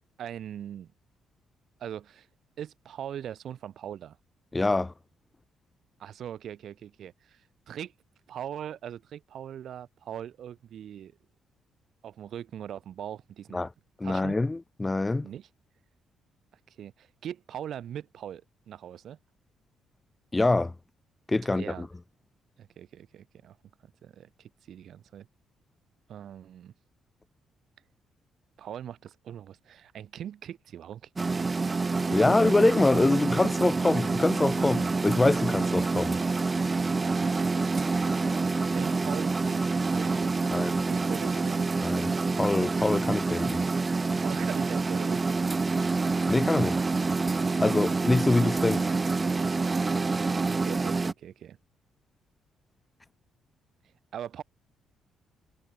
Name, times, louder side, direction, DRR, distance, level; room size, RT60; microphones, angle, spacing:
voice 1, 0.2-0.9 1.8-2.3 2.6-4.2 6.0-7.4 7.7-7.9 8.3-11.1 12.0-13.7 14.0-14.4 15.2-15.5 16.7-19.2 21.5-21.9 22.6-23.6 24.0-25.3 26.1-26.7 28.6-31.1 31.3-31.7 36.8-37.7 38.7-41.9 44.1-45.6 46.6-46.9 47.5-48.0 50.5-51.6 54.1-54.4, right 10 dB, 65° right, 3.3 m, -41 dB
voice 2, 4.5-4.9 13.5-13.7 14.0-15.3 20.3-20.7 21.3-21.9 32.1-36.2 40.5-40.7 41.8-43.6 46.3-46.7 47.6-48.9, left 2 dB, 20° left, 1.0 m, -25 dB
sound 1, 31.2-51.1, right 3 dB, 25° right, 1.3 m, -27 dB
cardioid pair, 90°, 0 cm